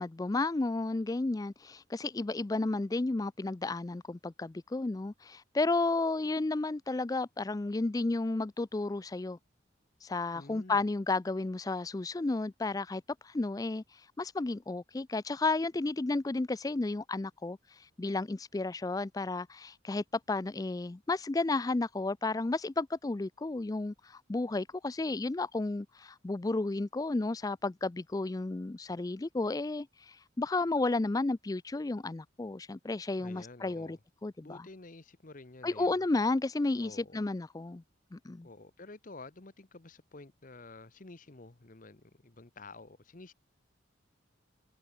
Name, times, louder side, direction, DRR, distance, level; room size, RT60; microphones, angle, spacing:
voice 1, 0.0-9.4 10.0-13.8 14.2-17.6 18.0-34.7 35.6-37.8 38.1-38.5, left 2 dB, 20° left, 0.4 m, -32 dB
voice 2, 10.3-10.8 33.2-34.0 34.4-36.0 36.8-37.3 38.4-43.3, left 3 dB, 45° left, 1.0 m, -50 dB
head